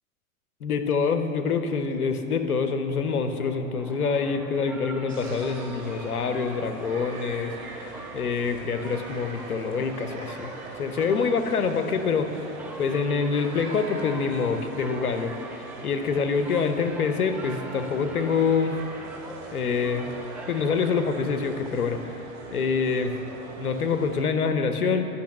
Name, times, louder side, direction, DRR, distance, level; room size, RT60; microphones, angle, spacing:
voice 1, 0.6-7.8 8.1-10.5 10.8-12.5 12.8-15.3 15.8-18.8 19.5-20.1 20.5-22.1 22.5-23.1 23.6-25.1, left 5 dB, 90° left, 7 dB, 1.0 m, -26 dB
sound 1, 2.9-22.3, right 1 dB, 5° right, 0.4 m, -44 dB
sound 2, 5.1-24.2, right 3 dB, 80° right, 2.4 m, -42 dB
11.5 x 6.2 x 7.5 m, 2.9 s
hypercardioid pair, 110°, 43 cm